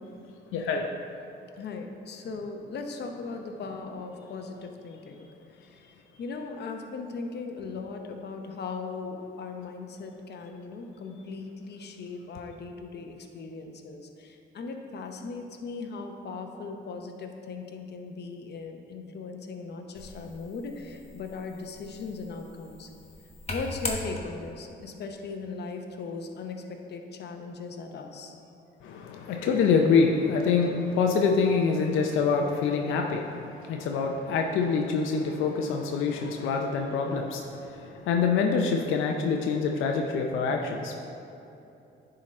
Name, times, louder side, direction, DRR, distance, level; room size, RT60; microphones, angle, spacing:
voice 1, 0.5-0.9 28.8-40.9, left 5 dB, 90° left, 2 dB, 0.6 m, -26 dB
voice 2, 1.6-5.3 5.7-5.8 6.2-22.9 23.5-26.6 26.9-28.4, left 4 dB, 55° left, 4 dB, 0.8 m, -38 dB
sound 1, 19.9-24.6, left 2 dB, 30° left, 1.1 m, -40 dB
10.0 x 3.9 x 4.3 m, 2.8 s
cardioid pair, 90°, 20 cm